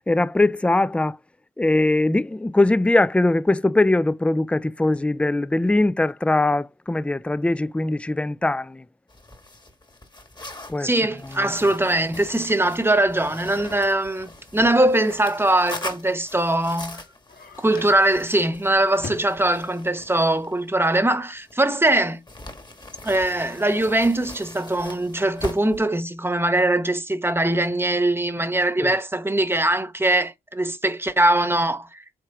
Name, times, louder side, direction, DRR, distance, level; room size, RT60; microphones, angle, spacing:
voice 1, 0.1-1.2 1.6-8.9 10.7-10.9 11.2-11.5 28.8-29.0, left 2 dB, 5° left, 0.4 m, -21 dB
sound 1, 9.1-21.8 22.3-25.9, left 2 dB, 25° left, 1.5 m, -41 dB
voice 2, 10.8-17.0 17.6-22.2 23.0-32.0, right 1 dB, 15° right, 1.1 m, -21 dB
sound 2, 16.9-22.4, left 4 dB, 55° left, 2.4 m, -43 dB
7.8 x 3.2 x 4.8 m
cardioid pair, 65°, 18 cm